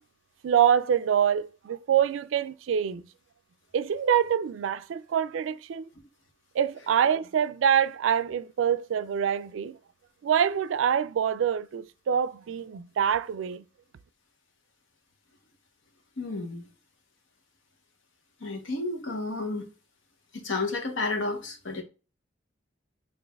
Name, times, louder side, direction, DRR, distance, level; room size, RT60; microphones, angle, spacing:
voice 1, 0.4-3.0 3.7-5.9 6.5-9.8 10.2-13.6, right 8 dB, 90° right, 0.3 m, -25 dB
voice 2, 16.2-16.7 18.4-19.7 20.3-21.8, left 3 dB, 80° left, 1.0 m, -31 dB
6.2 x 2.5 x 2.3 m
head